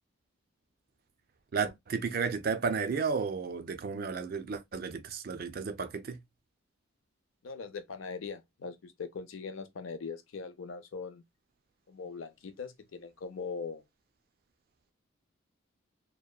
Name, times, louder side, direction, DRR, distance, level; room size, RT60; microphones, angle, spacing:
voice 1, 1.5-6.2, right 5 dB, 45° right, 0.4 m, -33 dB
voice 2, 7.4-11.2 11.9-13.8, left 5 dB, 75° left, 0.5 m, -41 dB
2.8 x 2.2 x 2.3 m
head